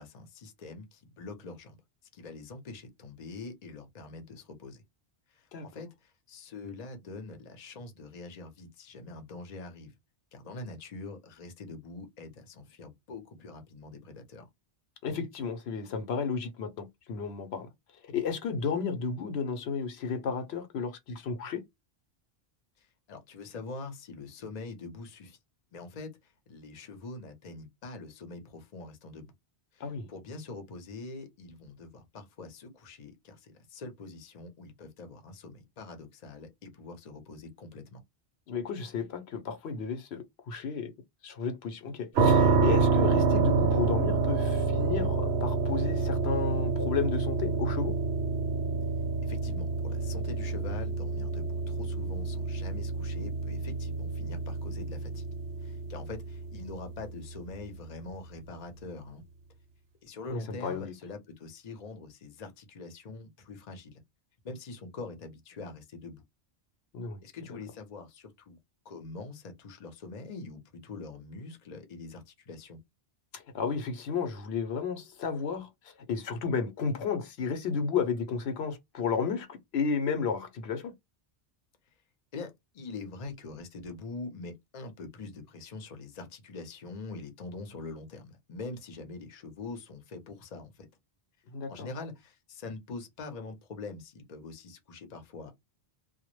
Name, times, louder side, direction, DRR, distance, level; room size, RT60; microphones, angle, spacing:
voice 1, 0.0-1.8 2.1-4.8 5.3-9.9 10.3-14.5 23.1-25.4 25.7-26.1 26.5-29.3 29.7-38.0 49.2-55.2 55.6-59.2 60.0-63.9 64.4-66.2 67.2-68.6 68.8-72.8 82.3-90.9 91.7-95.5, left 3 dB, 45° left, 0.7 m, -44 dB
voice 2, 15.0-17.7 18.1-21.6 29.8-30.1 38.5-40.9 41.2-47.9 60.3-60.9 66.9-67.2 67.5-67.6 73.3-80.9 91.5-91.9, left 5 dB, 75° left, 0.8 m, -33 dB
sound 1, 42.1-57.0, right 4 dB, 75° right, 0.8 m, -28 dB
2.2 x 2.0 x 3.0 m
omnidirectional pair, 1.1 m